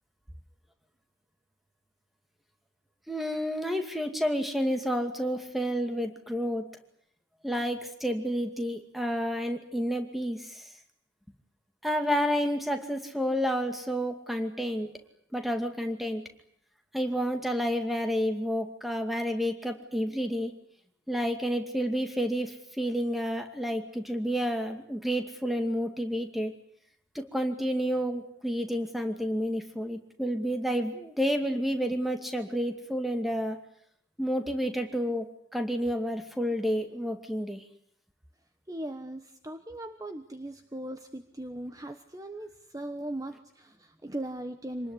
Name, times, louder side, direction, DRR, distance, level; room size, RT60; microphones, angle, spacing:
voice 1, 3.1-6.6 7.4-10.6 11.8-14.9 15.3-16.2 16.9-20.5 21.1-26.5 27.1-33.6 34.2-35.3 35.5-37.6, equal, ahead, 5 dB, 2.3 m, -30 dB
voice 2, 38.7-44.9, right 1 dB, 20° right, 8 dB, 1.2 m, -39 dB
27.0 x 20.0 x 10.0 m, 0.71 s
head